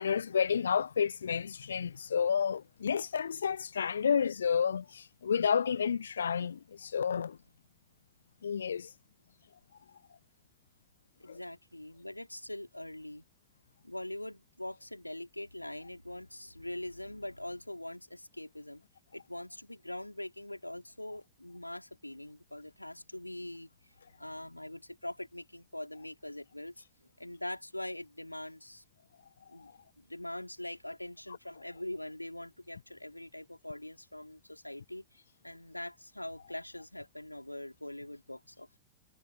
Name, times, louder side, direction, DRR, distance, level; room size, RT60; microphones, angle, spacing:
voice 1, 0.0-7.4 8.4-8.9 11.3-11.4, left 7 dB, 70° left, 0.8 m, -30 dB
voice 2, 11.2-13.2 13.8-18.8 19.1-26.8 27.2-28.8 29.5-29.7 30.0-38.8, left 1 dB, 85° left, 3.9 m, -43 dB
figure-of-eight pair, 90°, 0 cm